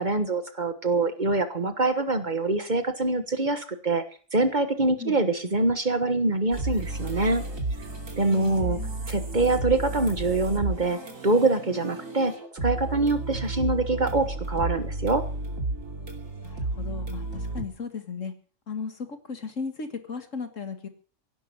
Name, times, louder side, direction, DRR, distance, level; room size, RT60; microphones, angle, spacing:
voice 1, 0.0-4.0 4.3-7.4 8.2-8.8 9.1-11.0 11.2-12.3 12.6-15.2, right 2 dB, 35° right, 9 dB, 1.4 m, -24 dB
sound 1, 6.5-17.6, right 2 dB, 90° right, 3.3 m, -32 dB
voice 2, 8.3-8.9 16.4-18.3 18.7-20.9, left 5 dB, 70° left, 8 dB, 2.2 m, -36 dB
16.5 x 11.5 x 6.2 m, 0.43 s
omnidirectional pair, 1.4 m